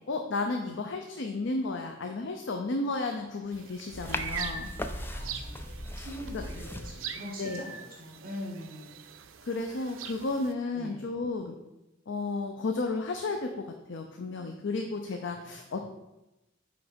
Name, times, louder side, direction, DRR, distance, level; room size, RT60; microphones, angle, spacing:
voice 1, 0.1-4.7 6.3-6.4 7.4-7.6 9.4-11.5 12.1-15.8, left 3 dB, 65° left, 4 dB, 0.6 m, -33 dB
sound 1, 3.5-10.5, right 6 dB, 85° right, 0.6 m, -42 dB
sound 2, 3.9-6.9, left 1 dB, 10° left, 0.4 m, -37 dB
voice 2, 5.1-8.9 10.7-11.0 15.2-15.3 15.7-15.8, equal, 50° right, -2 dB, 1.7 m, -43 dB
5.8 x 5.1 x 5.1 m, 0.98 s
head